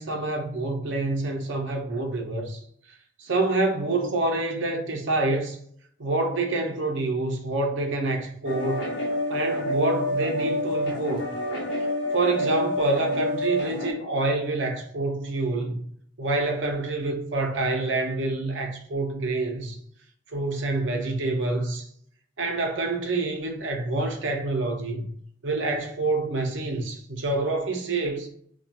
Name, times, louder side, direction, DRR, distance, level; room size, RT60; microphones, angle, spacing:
voice 1, 0.0-2.6 3.2-5.6 6.0-8.9 9.3-11.3 12.1-15.8 16.2-19.8 20.3-21.9 22.4-25.1 25.4-28.3, right 2 dB, 75° right, 0.6 m, -27 dB
sound 1, 8.5-13.9, left 1 dB, 60° left, 0.8 m, -27 dB
2.3 x 2.3 x 2.7 m
head